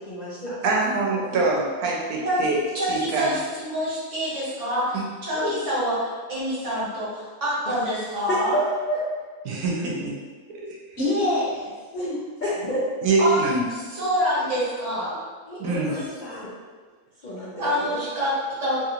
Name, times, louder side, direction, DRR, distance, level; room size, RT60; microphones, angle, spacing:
voice 1, 0.0-0.5 2.2-2.4 5.3-5.5 11.0-12.2 15.4-16.4, left 1 dB, 50° left, -9 dB, 1.2 m, -29 dB
voice 2, 0.6-2.6 2.9-3.3 4.9-5.0 9.4-10.1 13.0-13.7 15.6-16.0, right 3 dB, 85° right, -2 dB, 1.2 m, -24 dB
voice 3, 2.7-5.0 5.2-8.6 13.2-13.4 13.7-15.2 15.9-16.0 17.6-18.3 18.6-18.8, equal, 55° right, -8 dB, 1.3 m, -26 dB
voice 4, 8.3-9.0 12.4-12.8 16.3-16.4 17.2-18.0, equal, 65° left, -7 dB, 0.4 m, -28 dB
3.2 x 2.4 x 2.8 m, 1.4 s
omnidirectional pair, 1.5 m